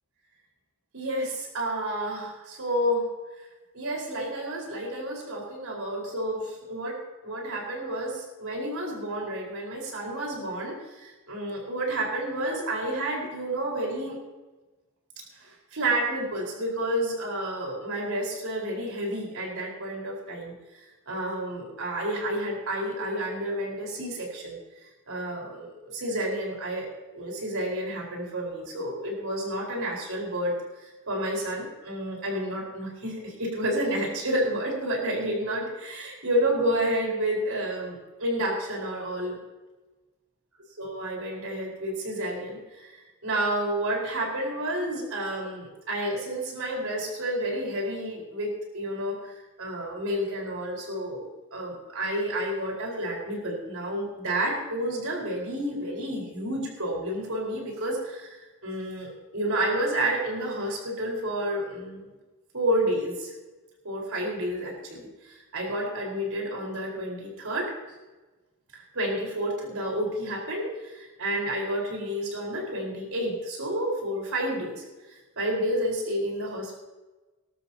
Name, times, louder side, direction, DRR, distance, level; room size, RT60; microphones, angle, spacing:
voice 1, 0.9-3.1 3.7-7.0 7.2-14.2 15.4-20.5 21.1-26.9 27.1-30.6 30.8-39.4 40.8-42.9 43.2-49.3 49.6-62.0 62.5-63.3 63.8-67.7 68.7-74.8 75.4-76.7, right 1 dB, 70° right, -2 dB, 4.7 m, -30 dB
20.0 x 12.5 x 2.9 m, 1.2 s
head